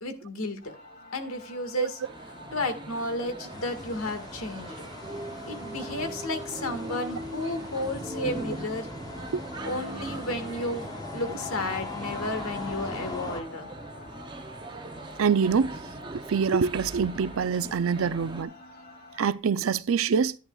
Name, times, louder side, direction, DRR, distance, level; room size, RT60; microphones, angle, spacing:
voice 1, 0.0-0.7 1.1-2.0 2.5-4.9 5.5-8.9 9.6-10.9 11.1-13.7, left 1 dB, 80° left, 1.7 m, -32 dB
sound 1, 0.6-19.3, left 4 dB, 45° left, 2.4 m, -47 dB
sound 2, 2.0-18.4, right 1 dB, 20° right, 0.6 m, -40 dB
sound 3, 3.5-13.4, left 2 dB, 15° left, 0.6 m, -42 dB
voice 2, 15.2-15.7 16.3-18.5 19.2-20.4, right 6 dB, 70° right, 0.4 m, -25 dB
10.5 x 10.5 x 2.3 m
head